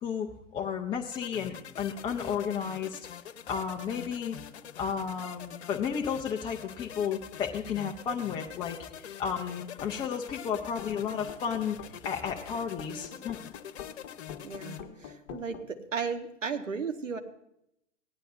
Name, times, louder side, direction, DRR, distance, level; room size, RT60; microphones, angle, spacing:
voice 1, 0.0-3.1 3.5-4.4 4.8-13.5, left 7 dB, 15° left, 2 dB, 0.4 m, -33 dB
sound 1, 1.1-14.8, left 9 dB, 60° left, 1.0 m, -45 dB
sound 2, 9.8-15.7, left 9 dB, 35° left, 1.1 m, -46 dB
voice 2, 14.4-17.2, right 5 dB, 85° right, 6 dB, 1.3 m, -35 dB
17.0 x 11.0 x 2.6 m, 0.78 s
figure-of-eight pair, 115°, 37 cm